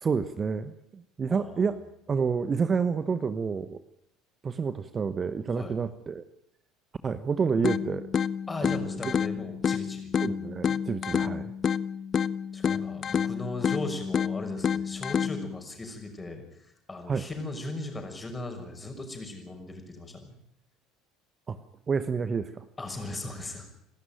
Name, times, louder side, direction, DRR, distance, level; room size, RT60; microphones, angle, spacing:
voice 1, 0.0-1.8 2.1-3.8 4.4-6.2 7.0-8.1 10.2-11.5 17.1-17.2 21.5-21.6 21.9-22.6, right 5 dB, 30° right, 12 dB, 1.2 m, -29 dB
voice 2, 1.3-1.6 5.5-5.8 8.5-10.1 12.5-20.4 22.8-23.7, left 2 dB, 20° left, 4 dB, 6.1 m, -38 dB
sound 1, 7.6-15.6, left 7 dB, 40° left, 0.7 m, -29 dB
27.5 x 13.0 x 9.2 m, 0.77 s
hypercardioid pair, 65°, 0 cm